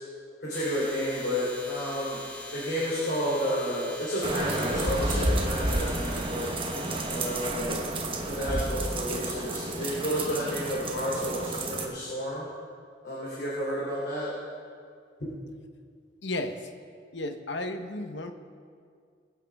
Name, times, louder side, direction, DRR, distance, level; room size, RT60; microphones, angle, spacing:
voice 1, 0.4-2.2 2.5-6.5 7.1-7.8 8.3-12.5 13.0-14.3 15.2-15.3, equal, 60° left, -7 dB, 3.1 m, -31 dB
sound 1, 0.5-7.5, left 1 dB, 10° left, 0.9 m, -43 dB
sound 2, 4.2-11.9, right 1 dB, 30° right, 1.1 m, -30 dB
voice 2, 16.2-16.7 17.1-18.3, left 2 dB, 75° left, 7 dB, 0.9 m, -33 dB
22.0 x 8.4 x 3.5 m, 2.2 s
head